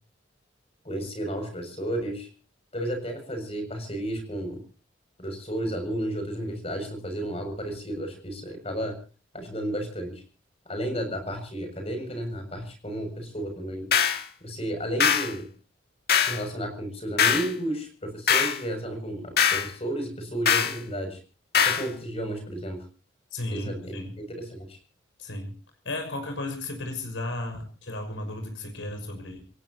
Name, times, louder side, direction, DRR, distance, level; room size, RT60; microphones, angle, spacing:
voice 1, 0.9-2.3 2.7-4.6 5.2-9.0 9.3-10.2 10.7-13.9 14.4-15.5 16.2-21.2 21.6-22.8 23.5-24.8, right 1 dB, 30° left, 6 dB, 6.8 m, -32 dB
sound 1, 13.9-14.2 15.0-15.3 16.1-16.4 17.2-17.5 18.3-18.6 19.4-19.7 20.5-20.8 21.5-21.9, left 7 dB, 50° left, 2.2 m, -22 dB
voice 2, 23.3-24.2 25.2-25.5 25.8-29.4, left 1 dB, 75° left, 5 dB, 6.0 m, -34 dB
28.0 x 17.5 x 2.9 m, 0.36 s
head